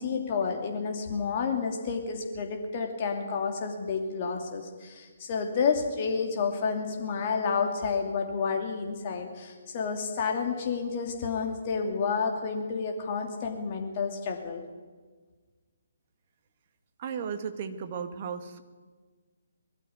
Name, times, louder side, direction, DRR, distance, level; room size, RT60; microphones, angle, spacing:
voice 1, 0.0-14.6, left 5 dB, 35° left, 2 dB, 2.9 m, -30 dB
voice 2, 17.0-18.6, right 6 dB, 40° right, 8 dB, 2.0 m, -35 dB
21.0 x 14.0 x 9.6 m, 1.4 s
figure-of-eight pair, 135°, 0 cm